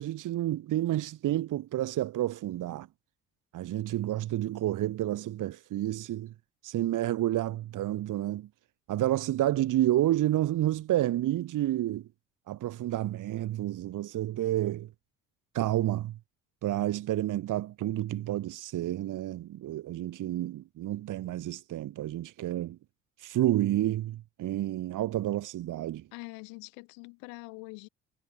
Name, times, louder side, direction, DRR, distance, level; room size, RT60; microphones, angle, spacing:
voice 1, 0.0-2.9 3.5-6.3 6.6-8.5 8.9-12.1 12.5-14.9 15.5-16.2 16.6-22.8 23.2-26.0, right 14 dB, 55° right, 2.2 m, -30 dB
voice 2, 26.1-27.9, left 34 dB, 65° left, 3.0 m, -44 dB
figure-of-eight pair, 45°, 38 cm